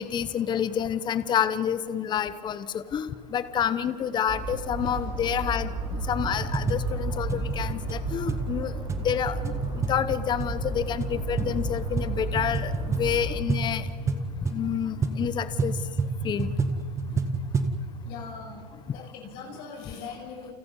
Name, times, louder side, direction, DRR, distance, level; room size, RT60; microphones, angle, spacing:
voice 1, 0.0-5.7 6.1-8.7 9.0-9.5 9.9-13.9 14.5-15.7 16.2-16.5, left 8 dB, 20° left, 13 dB, 0.9 m, -28 dB
sound 1, 4.3-13.4, right 2 dB, 30° right, 5.9 m, -33 dB
sound 2, 6.1-17.8, right 3 dB, 15° right, 1.6 m, -30 dB
voice 2, 17.0-17.3 18.0-18.6 18.9-20.5, left 6 dB, 45° left, 0 dB, 6.0 m, -41 dB
29.5 x 28.5 x 5.5 m, 2.1 s
supercardioid pair, 140°, 21 cm